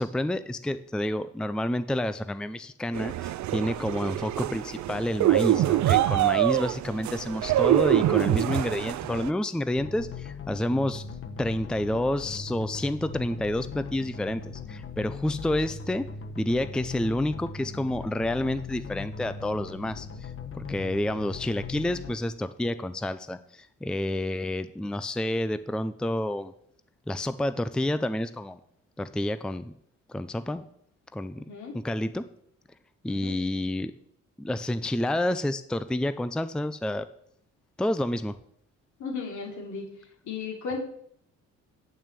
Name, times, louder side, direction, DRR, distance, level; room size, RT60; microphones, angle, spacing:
voice 1, 0.0-11.0 11.4-16.1 16.4-26.5 27.1-28.6 29.0-29.7 30.1-30.6 31.1-31.4 31.7-32.3 33.0-33.9 34.4-37.1 37.8-38.3, left 1 dB, 5° left, 13 dB, 0.5 m, -29 dB
sound 1, 2.9-9.3, right 13 dB, 65° right, 0.5 m, -25 dB
sound 2, 9.8-22.2, left 5 dB, 45° left, 1.2 m, -39 dB
voice 2, 31.4-31.8 33.1-33.4 39.0-39.9 40.2-40.8, left 4 dB, 75° left, 0 dB, 3.4 m, -35 dB
9.0 x 6.1 x 8.3 m, 0.68 s
cardioid pair, 90°, 30 cm